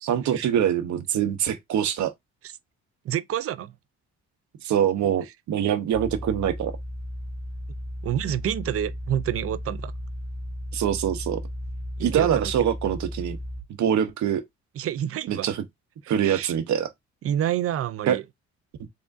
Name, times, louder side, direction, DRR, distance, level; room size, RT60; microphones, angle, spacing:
voice 1, 0.0-2.1 4.6-6.7 10.7-11.4 12.0-13.4 13.8-14.4 15.3-15.6 16.1-16.9 18.1-18.2, right 9 dB, 70° right, 0.9 m, -24 dB
voice 2, 3.0-3.7 8.0-9.9 12.0-12.5 14.8-15.5 16.2-16.5 17.2-18.2, right 11 dB, 50° right, 0.5 m, -28 dB
sound 1, 5.9-13.6, equal, 60° left, 1.4 m, -35 dB
3.7 x 3.5 x 2.6 m
cardioid pair, 90°, 30 cm